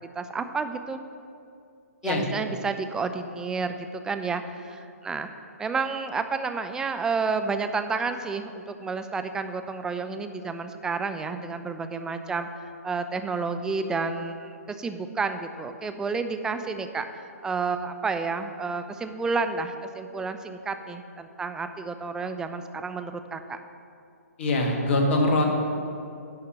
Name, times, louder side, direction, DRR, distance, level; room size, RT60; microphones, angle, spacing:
voice 1, 0.2-1.0 2.0-5.3 5.6-23.6, right 4 dB, 10° right, 8 dB, 0.4 m, -30 dB
voice 2, 24.4-25.4, left 2 dB, 50° left, 2 dB, 1.6 m, -23 dB
11.0 x 4.3 x 7.3 m, 2.5 s
figure-of-eight pair, 130°, 8 cm